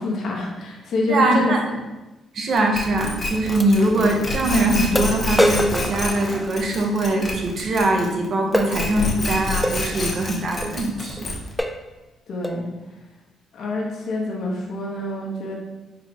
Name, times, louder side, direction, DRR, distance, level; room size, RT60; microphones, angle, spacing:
voice 1, 0.0-1.5 12.3-12.6 13.5-15.5, left 2 dB, 65° left, -2 dB, 1.0 m, -26 dB
voice 2, 1.1-1.6 2.3-11.3, right 2 dB, 55° right, 2 dB, 0.7 m, -22 dB
sound 1, 2.6-2.7 3.6-3.7 4.4-4.5 5.0-6.9 8.5-8.8 9.6-9.8 10.6-10.8 11.2-11.3 11.6-11.9 12.4-12.7, left 1 dB, 5° left, 0.3 m, -24 dB
sound 2, 2.7-8.2 8.5-11.6, left 2 dB, 40° left, 0.9 m, -27 dB
4.3 x 2.2 x 4.2 m, 1.0 s
cardioid pair, 90°, 0 cm